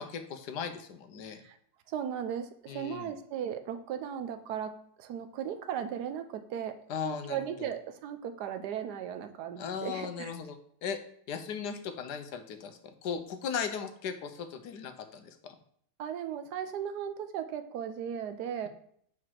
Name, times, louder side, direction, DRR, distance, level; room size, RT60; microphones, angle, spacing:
voice 1, 0.0-1.4 2.7-3.1 6.9-7.7 9.6-11.0 11.3-15.5, left 7 dB, 80° left, 7 dB, 1.3 m, -37 dB
voice 2, 1.9-6.8 7.0-10.3 16.0-18.7, right 9 dB, 80° right, 9 dB, 1.2 m, -37 dB
5.0 x 4.7 x 5.8 m, 0.65 s
omnidirectional pair, 1.7 m